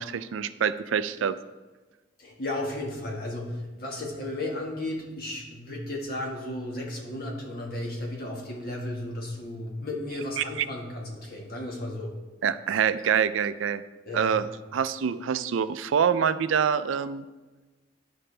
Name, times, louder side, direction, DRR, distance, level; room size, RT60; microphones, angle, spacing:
voice 1, 0.0-1.4 10.4-10.5 12.4-13.8 14.1-14.5 14.7-17.2, right 7 dB, 90° right, 14 dB, 0.4 m, -25 dB
voice 2, 2.2-12.1 14.0-14.3, left 1 dB, 50° left, -1 dB, 1.7 m, -34 dB
12.0 x 5.1 x 3.3 m, 1.2 s
head